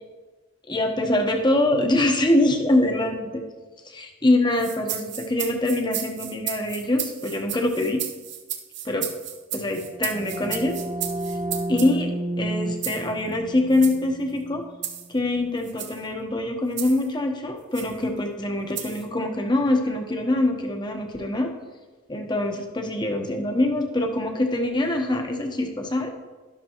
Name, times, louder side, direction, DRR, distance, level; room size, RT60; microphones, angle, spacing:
voice 1, 0.7-3.4 3.9-8.0 8.8-9.1 9.5-10.8 11.7-12.1 12.4-14.6 15.1-21.5 22.1-26.1, left 1 dB, 20° left, 3 dB, 1.1 m, -24 dB
sound 1, 4.6-11.9 12.8-13.1 13.7-14.0 14.8-15.1 15.6-16.0 16.8-17.1 17.7-17.9 18.8-19.1, right 10 dB, 55° right, 1.0 m, -33 dB
sound 2, 9.7-15.2, right 1 dB, 30° right, 0.7 m, -32 dB
12.0 x 12.0 x 3.0 m, 1.3 s
head